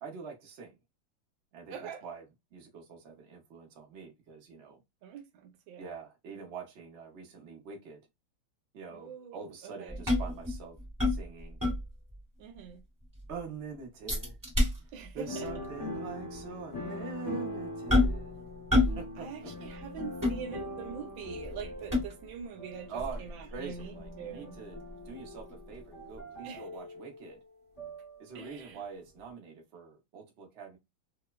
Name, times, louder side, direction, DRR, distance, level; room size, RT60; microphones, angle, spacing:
voice 1, 0.0-0.8 1.5-2.2 2.5-4.8 5.8-8.0 8.7-10.8 11.1-11.6 13.3-14.4 15.1-18.3 18.7-19.3 22.9-27.4 28.2-30.8, right 5 dB, 55° right, 0.7 m, -44 dB
voice 2, 1.7-2.0 5.0-5.9 8.9-10.0 12.4-12.8 14.9-15.5 19.2-22.9 23.2-24.5 26.4-26.6 28.3-28.8, right 7 dB, 80° right, 1.4 m, -44 dB
sound 1, 9.9-12.2 12.5-12.6 13.0-13.4 14.1-15.2 15.5-15.7 16.3-16.4 17.9-18.3 18.7-19.1 19.3-20.9 21.4-22.4 23.0-25.8 26.2-26.3, left 2 dB, 15° right, 0.7 m, -30 dB
sound 2, 15.2-28.9 29.2-29.3, left 1 dB, 25° left, 0.8 m, -43 dB
3.2 x 2.1 x 2.2 m
omnidirectional pair, 2.1 m